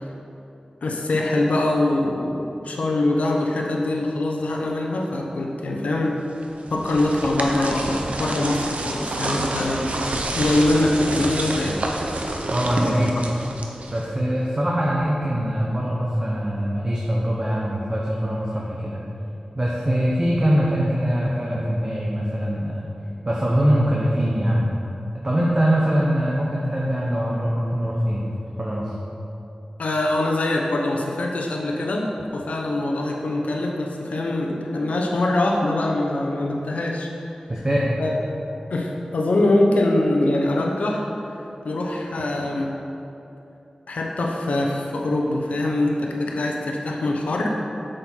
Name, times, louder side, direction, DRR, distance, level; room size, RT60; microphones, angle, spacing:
voice 1, 0.8-6.2 6.7-9.9 10.3-11.8 29.8-32.1 32.3-37.1 38.0-38.4 38.7-41.0 41.6-42.7 43.9-47.6, left 2 dB, 90° left, 0 dB, 0.9 m, -23 dB
sound 1, 6.4-14.2, right 2 dB, 70° right, 0.8 m, -28 dB
voice 2, 12.5-13.2 13.9-19.0 19.5-22.8 23.2-24.6 25.2-28.2 28.6-28.9 37.5-38.0, equal, 30° right, -4 dB, 1.1 m, -22 dB
7.9 x 6.5 x 4.6 m, 2.9 s
wide cardioid pair, 60°, 2 cm